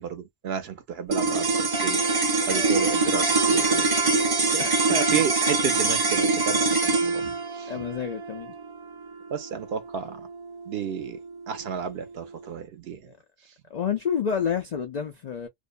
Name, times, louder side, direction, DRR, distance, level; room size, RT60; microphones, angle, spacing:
voice 1, 0.0-2.0 2.5-4.2 4.5-7.7 9.3-10.3 10.7-11.2 11.5-13.1, right 7 dB, 65° right, 0.7 m, -32 dB
sound 1, 1.1-11.5, right 3 dB, 25° right, 0.6 m, -24 dB
voice 2, 7.7-8.5 13.0-13.1 13.7-15.5, left 7 dB, 65° left, 0.4 m, -29 dB
2.5 x 2.1 x 2.4 m
omnidirectional pair, 1.3 m